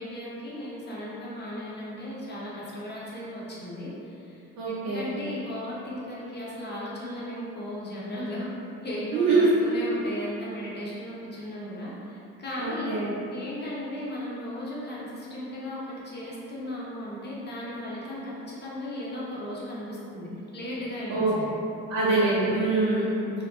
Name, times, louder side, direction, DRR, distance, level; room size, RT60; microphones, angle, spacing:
voice 1, 0.0-8.5 8.8-13.0 13.3-21.5 22.9-23.3, left 1 dB, 25° left, -7 dB, 0.7 m, -36 dB
voice 2, 4.6-5.1 9.1-9.6 12.6-13.1 21.1-21.3 21.9-23.1, right 3 dB, 50° right, -9 dB, 0.6 m, -24 dB
2.5 x 2.1 x 2.3 m, 2.8 s
hypercardioid pair, 50°, 41 cm